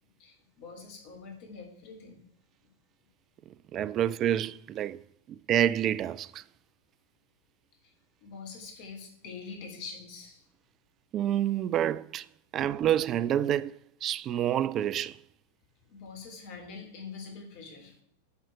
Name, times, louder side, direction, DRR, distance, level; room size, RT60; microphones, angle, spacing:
voice 1, 0.2-2.3 2.6-2.7 8.2-10.4 15.9-17.9, left 5 dB, 45° left, 2.9 m, -44 dB
voice 2, 3.5-5.0 5.3-6.4 11.1-12.3 12.5-15.2, right 11 dB, 30° right, 0.4 m, -28 dB
10.5 x 6.3 x 4.5 m
figure-of-eight pair, 90°, 0 cm